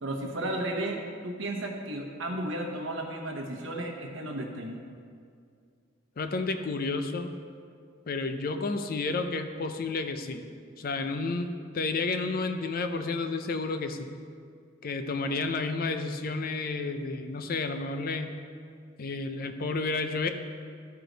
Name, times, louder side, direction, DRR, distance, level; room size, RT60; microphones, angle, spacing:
voice 1, 0.0-4.8, right 1 dB, 75° right, 2 dB, 1.1 m, -34 dB
voice 2, 6.2-7.3 8.1-10.4 10.8-14.1 14.8-18.3 19.0-20.3, left 3 dB, 50° left, 8 dB, 0.5 m, -31 dB
13.0 x 4.7 x 3.9 m, 2.2 s
head